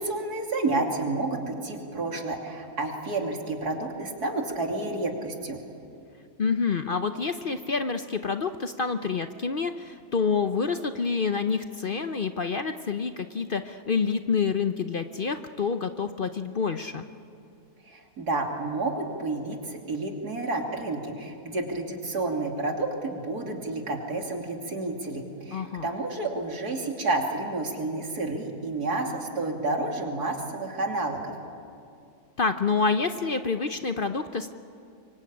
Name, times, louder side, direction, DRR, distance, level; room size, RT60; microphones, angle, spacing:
voice 1, 0.0-5.6 17.8-31.3, right 2 dB, 90° right, 2 dB, 3.3 m, -30 dB
voice 2, 6.4-17.0 25.5-25.9 32.4-34.5, left 5 dB, 45° left, 8 dB, 0.8 m, -27 dB
25.0 x 23.5 x 8.7 m, 2.5 s
omnidirectional pair, 1.6 m